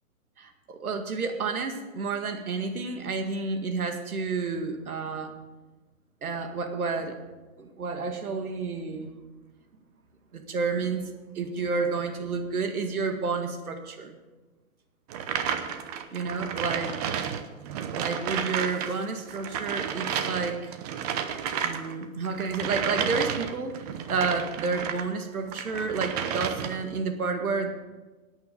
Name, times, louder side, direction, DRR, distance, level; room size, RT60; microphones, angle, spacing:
voice 1, 0.4-5.3 6.2-7.2 7.6-9.1 10.3-11.1 11.3-14.2 16.1-16.9 17.9-20.8 21.6-27.7, right 4 dB, 85° right, 5 dB, 2.2 m, -30 dB
sound 1, 15.1-18.9 19.2-25.1 25.5-26.9, right 8 dB, 30° right, 0.8 m, -32 dB
17.5 x 8.9 x 5.3 m, 1.2 s
hypercardioid pair, 150°, 42 cm